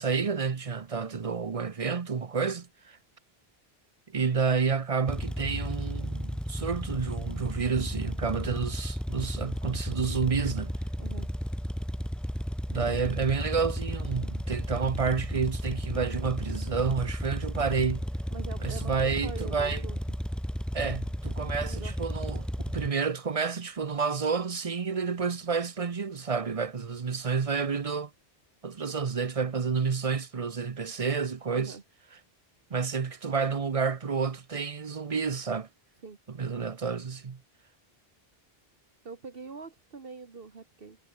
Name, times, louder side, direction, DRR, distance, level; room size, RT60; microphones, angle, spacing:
voice 1, 0.0-3.0 4.1-10.7 12.7-18.0 18.6-19.8 20.7-28.1 28.6-31.8 32.7-35.7 36.3-37.4, right 5 dB, 40° right, 0.8 m, -30 dB
sound 1, 5.1-22.9, equal, ahead, 0.7 m, -33 dB
voice 2, 11.0-11.3 18.3-20.0 21.4-21.9 31.5-31.8 36.0-36.2 39.0-41.0, right 4 dB, 65° right, 1.8 m, -43 dB
omnidirectional pair, 1.1 m